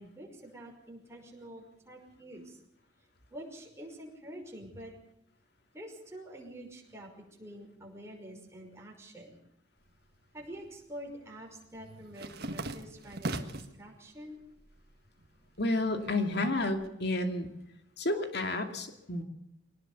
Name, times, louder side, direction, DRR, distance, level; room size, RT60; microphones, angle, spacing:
voice 1, 0.0-2.6 3.3-4.9 5.7-7.1 7.4-9.4 10.3-14.4, right 1 dB, 15° right, -1 dB, 5.5 m, -47 dB
sound 1, 9.9-10.7 11.0-13.8 14.2-14.9 15.2-16.9, right 2 dB, 55° right, 1.5 m, -40 dB
voice 2, 15.6-17.5 18.0-19.2, left 2 dB, 60° left, 6 dB, 2.5 m, -31 dB
22.5 x 18.5 x 6.9 m, 0.79 s
head